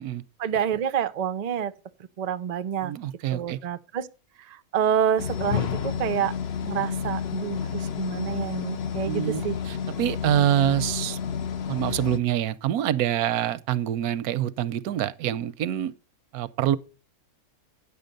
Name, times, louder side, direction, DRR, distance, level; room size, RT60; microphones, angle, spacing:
voice 1, 0.4-1.7 2.2-2.9 3.3-4.1 4.5-6.3 6.6-9.6, right 9 dB, 65° right, 0.4 m, -28 dB
voice 2, 2.8-3.6 9.1-11.2 11.7-15.9 16.3-16.8, right 11 dB, 85° right, 1.1 m, -26 dB
sound 1, 5.2-12.2, left 7 dB, 55° left, 0.8 m, -30 dB
9.6 x 6.9 x 5.2 m
omnidirectional pair, 1.5 m